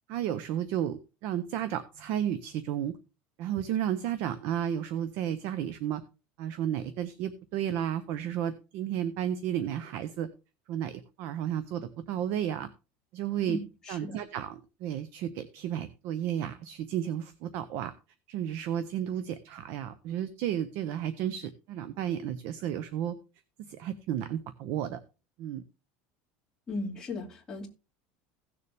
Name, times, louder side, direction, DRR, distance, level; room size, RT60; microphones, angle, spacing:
voice 1, 0.1-3.0 3.4-6.0 6.4-10.3 10.7-12.7 13.1-13.6 13.9-17.9 18.3-23.2 23.6-25.0 25.4-25.6, right 10 dB, 50° right, 0.8 m, -32 dB
voice 2, 13.5-14.2 26.7-27.7, left 2 dB, 10° left, 2.4 m, -37 dB
16.5 x 6.8 x 3.5 m
cardioid pair, 175°, 5 cm